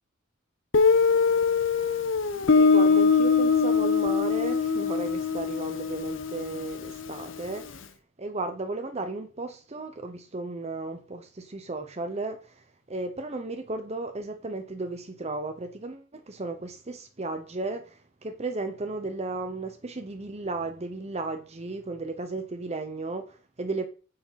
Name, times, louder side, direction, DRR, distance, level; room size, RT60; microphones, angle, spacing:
Guitar, 0.7-7.4, left 5 dB, 75° left, 0.9 m, -23 dB
voice 1, 2.6-7.8 8.2-12.5 12.9-23.9, right 3 dB, 35° right, 0.8 m, -34 dB
8.1 x 6.7 x 5.7 m
head